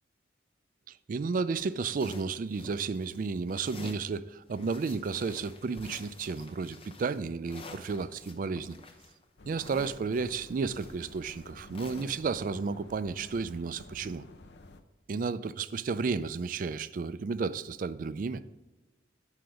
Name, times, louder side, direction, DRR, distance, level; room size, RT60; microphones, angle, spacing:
voice 1, 0.9-8.8 9.5-14.2 15.1-18.4, right 4 dB, 45° right, 15 dB, 0.3 m, -32 dB
sound 1, 1.5-3.2 3.5-4.1 4.5-12.4, left 2 dB, 30° left, 0.8 m, -49 dB
sound 2, 9.4-14.8, left 2 dB, 65° left, 0.6 m, -52 dB
7.8 x 5.7 x 5.0 m, 1.2 s
head